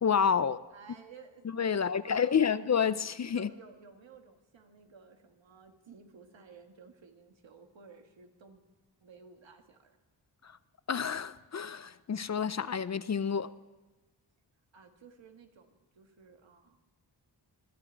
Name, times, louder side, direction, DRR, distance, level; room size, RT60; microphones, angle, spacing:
voice 1, 0.0-0.6 1.4-3.5 10.4-10.6 10.9-13.5, left 7 dB, 40° left, 0.4 m, -29 dB
voice 2, 0.7-1.5 1.7-2.5 3.3-8.6 9.0-10.0 14.7-16.8, right 5 dB, 90° right, 1.7 m, -55 dB
21.0 x 14.0 x 4.5 m
wide cardioid pair, 120°, 44 cm